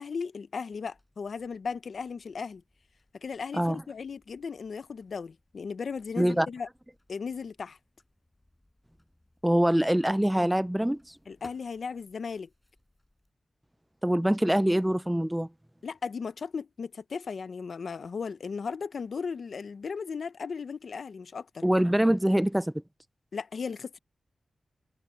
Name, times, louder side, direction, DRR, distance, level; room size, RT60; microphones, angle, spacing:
voice 1, 0.0-2.6 3.2-6.7 7.1-7.8 11.3-12.5 15.8-21.6 23.3-24.0, left 5 dB, 65° left, 0.8 m, -36 dB
sound 1, 0.7-13.3, left 1 dB, 10° left, 7.0 m, -63 dB
voice 2, 6.2-6.5 9.4-11.2 14.0-15.5 21.6-22.7, equal, 5° right, 0.3 m, -24 dB
wide cardioid pair, 145°, 0 cm